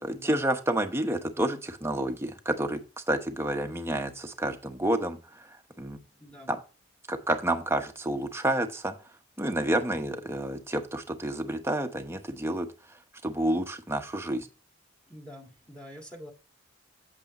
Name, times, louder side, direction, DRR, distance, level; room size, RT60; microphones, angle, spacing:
voice 1, 0.0-2.8 3.1-5.2 5.8-6.0 6.5-6.6 7.1-8.9 9.4-12.7 13.2-14.5, right 1 dB, 15° right, 5 dB, 1.1 m, -29 dB
voice 2, 6.2-6.5 15.1-16.3, equal, 5° left, 1 dB, 1.8 m, -46 dB
8.4 x 8.3 x 3.0 m, 0.33 s
head